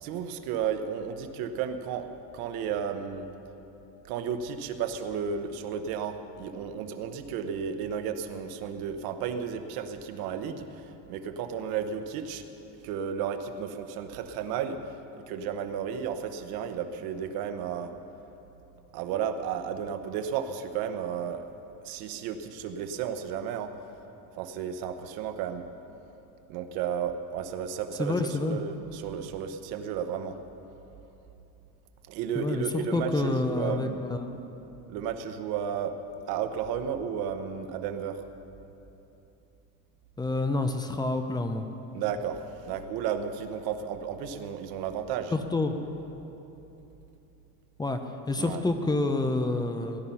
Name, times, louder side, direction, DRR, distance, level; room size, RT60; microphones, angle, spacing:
voice 1, 0.0-2.1 2.3-3.3 4.1-10.7 11.1-12.4 12.8-14.8 15.3-17.9 18.9-21.4 21.8-23.7 24.4-25.6 26.5-30.4 32.1-34.0 34.9-36.0 36.3-38.2 41.9-45.3 48.4-48.6, right 7 dB, 85° right, 8 dB, 1.1 m, -33 dB
voice 2, 28.0-28.6 32.3-34.4 40.2-41.7 45.3-45.7 47.8-48.0 48.3-50.0, left 2 dB, 10° left, 6 dB, 0.6 m, -28 dB
17.5 x 11.5 x 5.6 m, 3.0 s
cardioid pair, 155°, 36 cm